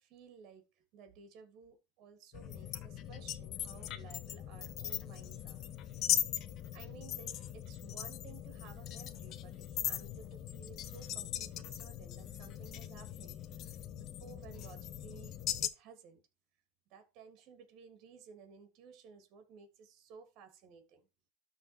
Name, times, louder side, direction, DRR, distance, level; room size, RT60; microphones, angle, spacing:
voice 1, 0.0-5.6 6.7-16.2 16.9-21.1, right 6 dB, 55° right, 3.0 m, -56 dB
sound 1, 2.3-15.7, left 11 dB, 45° left, 1.1 m, -40 dB
12.5 x 4.4 x 4.6 m
supercardioid pair, 110°, 0 cm